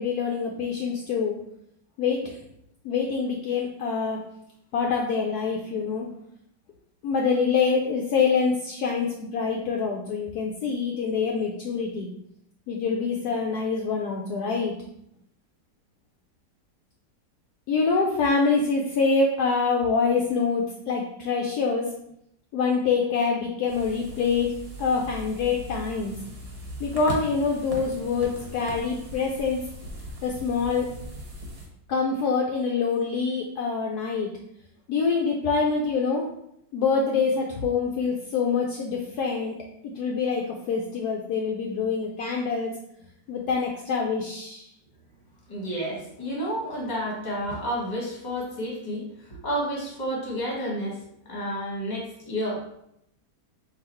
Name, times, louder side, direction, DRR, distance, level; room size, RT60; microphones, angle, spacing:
voice 1, 0.0-1.3 2.0-2.4 2.8-4.2 4.7-6.1 7.0-12.1 12.7-14.7 17.7-21.9 22.5-24.5 24.8-26.1 26.8-29.6 30.2-30.9 31.9-34.3 34.9-36.3 36.7-39.5 39.8-42.7 43.3-44.7, left 5 dB, 70° left, 0 dB, 1.0 m, -25 dB
sound 1, 23.7-31.7, equal, 60° right, 1.6 m, -39 dB
voice 2, 45.5-52.7, equal, 30° left, -3 dB, 1.2 m, -31 dB
3.9 x 2.7 x 4.3 m, 0.76 s
omnidirectional pair, 1.9 m